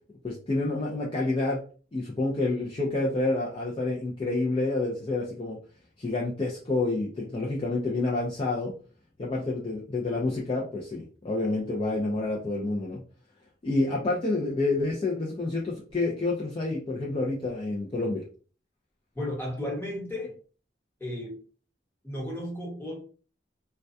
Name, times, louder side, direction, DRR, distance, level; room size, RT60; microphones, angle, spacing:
voice 1, 0.2-1.6 1.9-5.6 6.0-8.7 9.2-13.0 13.6-18.2, left 2 dB, 30° left, -3 dB, 0.4 m, -28 dB
voice 2, 19.1-20.3 21.0-21.4 22.0-23.0, left 1 dB, 10° left, -4 dB, 1.1 m, -34 dB
2.2 x 2.2 x 2.6 m, 0.39 s
head